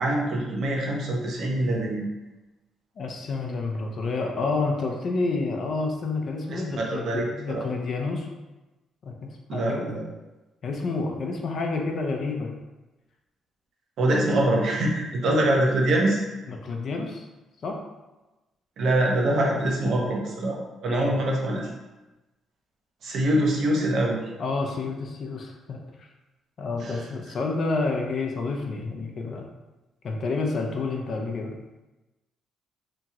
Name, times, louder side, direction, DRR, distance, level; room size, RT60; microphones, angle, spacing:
voice 1, 0.0-2.0 6.5-7.6 9.5-10.1 14.0-16.2 18.8-21.7 23.0-24.2 26.8-27.0, right 1 dB, 70° right, -1 dB, 0.7 m, -24 dB
voice 2, 3.0-8.3 9.0-9.9 10.6-12.5 16.5-17.2 17.6-17.8 20.9-21.1 24.4-26.1 26.6-29.5 30.0-31.5, left 3 dB, 55° left, 1 dB, 0.5 m, -29 dB
2.9 x 2.3 x 2.8 m, 1.1 s
cardioid pair, 90°, 0 cm